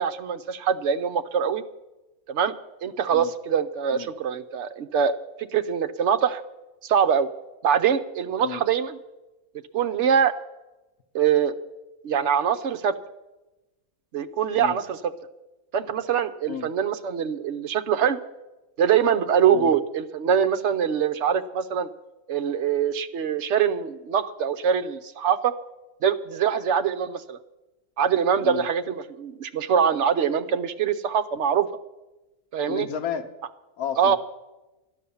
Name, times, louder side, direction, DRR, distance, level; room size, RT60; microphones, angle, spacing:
voice 1, 0.0-1.6 2.3-2.5 2.8-6.4 6.8-7.3 7.6-9.0 9.7-10.3 11.1-11.5 12.0-12.9 14.1-15.1 15.7-18.2 18.8-21.9 22.3-25.5 26.0-27.4 28.0-31.7 32.5-32.9 34.0-34.2, right 7 dB, 60° right, 8 dB, 0.9 m, -23 dB
voice 2, 32.7-33.3 33.8-34.2, left 9 dB, 85° left, 8 dB, 1.4 m, -32 dB
13.0 x 10.0 x 7.0 m, 1.1 s
omnidirectional pair, 1.5 m